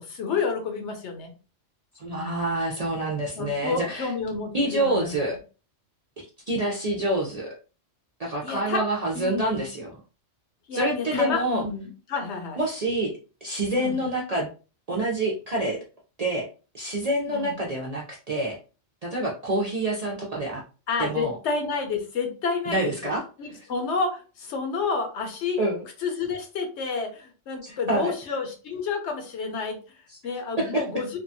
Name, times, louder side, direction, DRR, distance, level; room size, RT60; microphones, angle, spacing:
voice 1, 0.0-1.3 2.1-2.5 3.4-5.4 8.4-8.8 9.1-9.6 10.7-12.6 13.7-13.9 17.3-17.6 20.9-25.7 26.0-29.8 30.2-31.1, left 4 dB, 70° left, 4 dB, 1.0 m, -30 dB
voice 2, 1.9-4.1 4.5-5.4 6.2-7.5 8.2-10.0 10.7-11.6 12.6-13.1 13.4-14.5 14.9-15.8 16.2-16.5 16.7-18.6 19.0-20.6 21.0-21.3 22.7-23.7 25.6-25.8 27.6-28.1 30.1-30.2 30.6-30.8, right 1 dB, 50° right, -3 dB, 0.4 m, -27 dB
2.7 x 2.2 x 2.6 m, 0.34 s
omnidirectional pair, 1.3 m